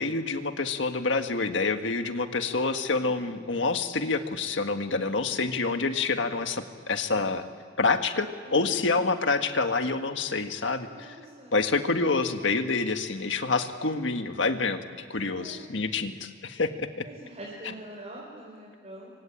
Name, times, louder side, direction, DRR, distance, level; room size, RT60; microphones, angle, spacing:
voice 1, 0.0-7.4 7.8-11.1 11.5-17.0, left 3 dB, 70° left, 7 dB, 1.7 m, -27 dB
voice 2, 2.4-3.2 8.4-9.0 10.9-11.6 15.1-15.6 17.0-19.1, right 1 dB, 35° right, -3 dB, 5.2 m, -44 dB
27.0 x 24.0 x 9.0 m, 2.1 s
head